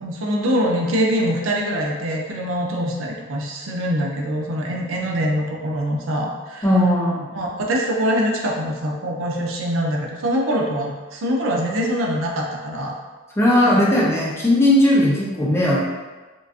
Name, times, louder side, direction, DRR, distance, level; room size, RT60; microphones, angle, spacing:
voice 1, 0.0-6.7 7.3-12.9 13.6-13.8, equal, 80° right, 0 dB, 0.5 m, -24 dB
voice 2, 6.6-7.3 13.4-15.8, left 1 dB, 10° left, -5 dB, 0.4 m, -17 dB
3.8 x 2.4 x 2.4 m, 1.3 s
head